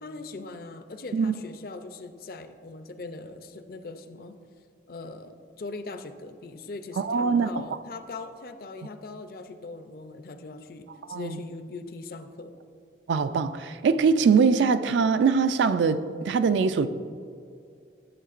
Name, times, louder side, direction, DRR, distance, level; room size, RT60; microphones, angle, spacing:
voice 1, 0.0-4.4 4.9-12.5, left 3 dB, 50° left, 9 dB, 0.4 m, -40 dB
voice 2, 7.0-7.6 11.1-11.4 13.1-16.9, right 5 dB, 80° right, 12 dB, 0.3 m, -22 dB
11.0 x 7.1 x 2.5 m, 2.4 s
head